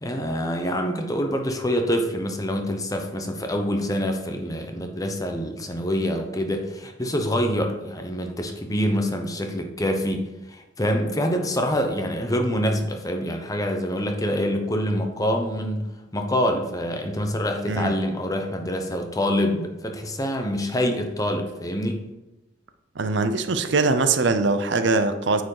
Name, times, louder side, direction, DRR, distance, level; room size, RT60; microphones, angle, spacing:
voice 1, 0.0-22.0, equal, 20° left, 4 dB, 0.8 m, -26 dB
voice 2, 23.0-25.4, right 3 dB, 60° right, 9 dB, 0.6 m, -22 dB
9.2 x 4.7 x 4.8 m, 1.0 s
head